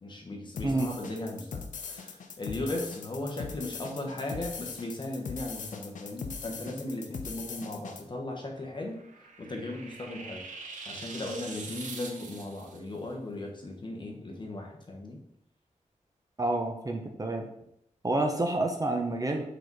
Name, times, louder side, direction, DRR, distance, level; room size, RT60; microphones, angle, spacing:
voice 1, 0.0-9.0 9.4-10.4 10.9-15.2, left 2 dB, 35° left, 1 dB, 1.1 m, -37 dB
sound 1, 0.6-8.0, left 5 dB, 85° left, 0.7 m, -40 dB
voice 2, 0.6-0.9 16.4-17.5 18.0-19.4, right 2 dB, 30° right, 3 dB, 0.7 m, -28 dB
sound 2, 8.6-12.8, right 3 dB, 85° right, 0.9 m, -44 dB
4.9 x 4.1 x 4.6 m, 0.74 s
wide cardioid pair, 140°, 13 cm